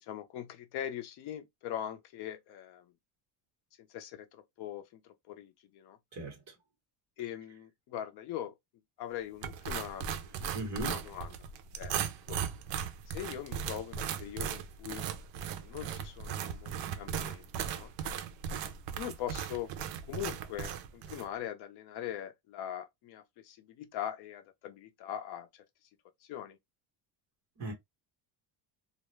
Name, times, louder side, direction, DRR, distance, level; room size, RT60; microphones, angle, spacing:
voice 1, 0.0-2.9 3.9-6.0 7.2-8.5 9.0-10.1 10.5-10.6 10.8-11.4 11.7-12.4 13.1-15.1 15.3-17.9 19.0-19.7 20.1-25.5 26.2-26.6, left 11 dB, 60° left, 0.6 m, -41 dB
sound 1, 9.4-21.3, right 8 dB, 70° right, 0.5 m, -38 dB
voice 2, 10.5-10.9 27.6-27.7, right 2 dB, 35° right, 1.1 m, -37 dB
2.4 x 2.1 x 3.0 m
cardioid pair, 165°, 46 cm